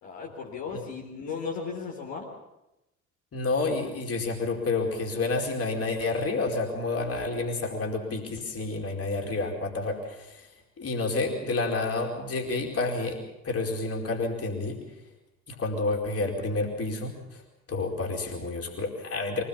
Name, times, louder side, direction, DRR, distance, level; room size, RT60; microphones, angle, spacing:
voice 1, 0.0-2.3, left 5 dB, 55° left, -1 dB, 4.0 m, -36 dB
voice 2, 3.3-10.5 10.8-13.2 13.4-14.8 15.5-17.4 17.7-19.4, left 3 dB, 35° left, 1 dB, 4.6 m, -29 dB
24.0 x 19.0 x 7.2 m, 0.95 s
figure-of-eight pair, 55°, 42 cm